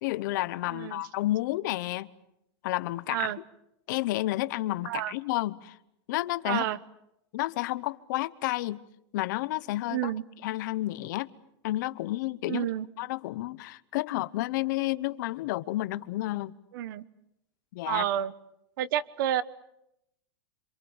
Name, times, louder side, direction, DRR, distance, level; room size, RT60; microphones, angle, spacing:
voice 1, 0.0-2.1 2.6-3.3 3.9-5.8 6.1-6.6 7.3-8.8 9.1-10.1 10.4-11.3 11.6-12.6 13.0-16.6 17.7-18.1, left 17 dB, 45° left, 0.9 m, -31 dB
voice 2, 0.7-1.0 3.1-3.4 4.8-5.1 6.5-6.8 9.9-10.2 12.5-12.9 16.7-17.0 17.9-18.3 18.8-19.4, right 11 dB, 50° right, 1.1 m, -29 dB
27.5 x 26.0 x 7.2 m
supercardioid pair, 170°, 14 cm